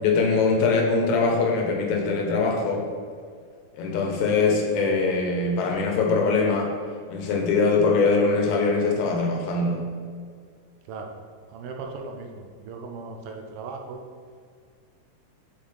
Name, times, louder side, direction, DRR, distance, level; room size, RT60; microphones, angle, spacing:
voice 1, 0.0-2.8 3.7-6.7 7.1-9.8, left 4 dB, 75° left, 1 dB, 2.3 m, -22 dB
voice 2, 11.5-14.0, right 4 dB, 80° right, 2 dB, 1.3 m, -37 dB
8.6 x 4.2 x 3.3 m, 2.1 s
omnidirectional pair, 3.4 m